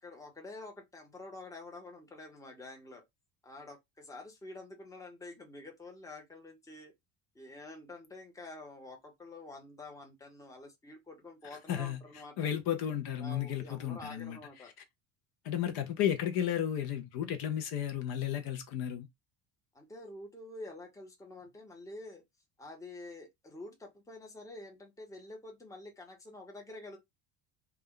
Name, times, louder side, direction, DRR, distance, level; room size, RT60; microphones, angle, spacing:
voice 1, 0.0-3.0 3.4-6.9 7.3-12.5 13.2-14.7 19.7-22.2 22.6-27.0, left 2 dB, 10° left, 0.7 m, -48 dB
voice 2, 11.7-12.0 12.4-14.4 15.4-19.1, left 10 dB, 55° left, 0.6 m, -33 dB
2.3 x 2.2 x 3.6 m
cardioid pair, 140°, 43 cm